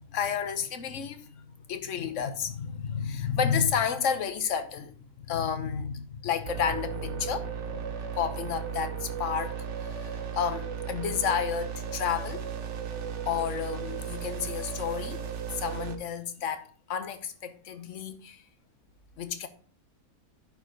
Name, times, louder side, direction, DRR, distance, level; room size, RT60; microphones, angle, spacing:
voice 1, 0.1-7.8 8.2-12.5 13.2-15.2 15.5-18.4 19.2-19.5, left 7 dB, 60° left, 1.3 m, -31 dB
sound 1, 6.4-16.0, right 7 dB, 55° right, 1.3 m, -35 dB
10.5 x 4.9 x 5.2 m
omnidirectional pair, 1.5 m